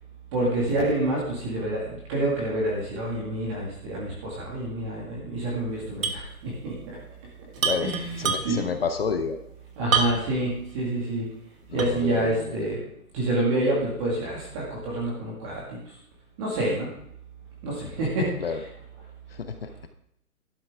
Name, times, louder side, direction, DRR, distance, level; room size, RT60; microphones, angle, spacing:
voice 1, 0.3-7.0 7.8-8.6 9.8-11.3 11.7-12.8 13.1-16.0 16.4-16.9 17.6-18.7, right 1 dB, 20° right, -4 dB, 2.1 m, -28 dB
sound 1, 6.0-6.3 6.6-6.7 7.6-8.7 9.9-10.4 10.9-11.0 11.8-12.2, right 5 dB, 60° right, 1.4 m, -26 dB
voice 2, 8.2-9.4 11.7-12.6 18.4-18.6 19.3-19.9, left 5 dB, 40° left, 7 dB, 0.8 m, -30 dB
11.5 x 9.9 x 3.6 m, 0.74 s
hypercardioid pair, 165°, 45 cm